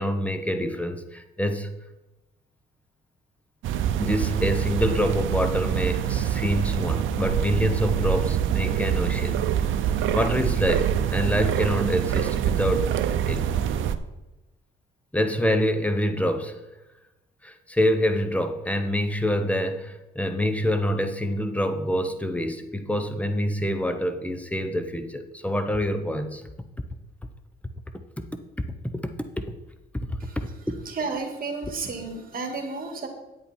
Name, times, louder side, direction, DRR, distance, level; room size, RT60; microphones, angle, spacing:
voice 1, 0.0-1.7 4.0-9.5 10.1-12.9 13.3-13.5 15.1-16.6 17.4-26.5 28.2-28.3 28.6-29.5 29.9-30.8, equal, 5° left, 8 dB, 1.0 m, -26 dB
sound 1, 3.6-14.0, right 9 dB, 80° right, 0.6 m, -25 dB
voice 2, 30.9-33.1, right 4 dB, 45° right, 4 dB, 2.1 m, -32 dB
9.1 x 8.2 x 4.4 m, 0.99 s
cardioid pair, 90°, 20 cm